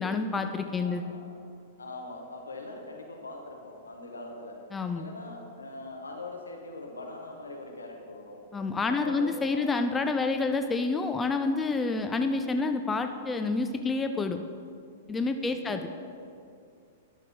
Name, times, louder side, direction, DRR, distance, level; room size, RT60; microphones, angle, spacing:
voice 1, 0.0-1.1 4.7-5.0 8.5-14.4 15.1-15.9, left 3 dB, 15° left, 7 dB, 0.4 m, -28 dB
voice 2, 0.8-1.4 1.8-4.6 4.9-8.4 8.9-9.7 15.3-16.3, left 2 dB, 80° left, 1 dB, 1.3 m, -42 dB
10.5 x 6.5 x 3.8 m, 2.3 s
figure-of-eight pair, 105°, 0 cm